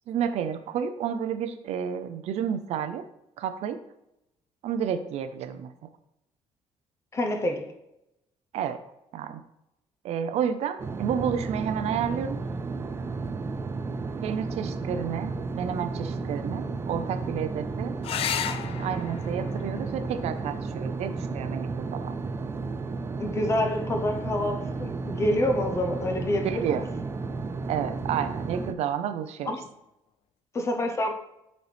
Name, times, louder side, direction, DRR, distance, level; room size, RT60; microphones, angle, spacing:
voice 1, 0.1-3.0 3.4-3.8 4.6-5.7 8.5-8.8 9.1-9.4 10.0-12.4 14.2-18.0 18.6-22.2 26.4-26.8 27.7-29.5, right 8 dB, 70° right, 10 dB, 0.5 m, -30 dB
voice 2, 7.1-7.7 23.2-26.8 29.5-29.6 30.5-31.1, left 1 dB, 25° left, 5 dB, 0.7 m, -27 dB
sound 1, 10.8-28.7, right 4 dB, 20° right, 0.3 m, -33 dB
sound 2, 18.0-23.1 24.9-25.6 29.0-29.1 29.5-29.6, left 9 dB, 55° left, 0.4 m, -37 dB
7.9 x 4.1 x 3.3 m, 0.85 s
cardioid pair, 165°, 11 cm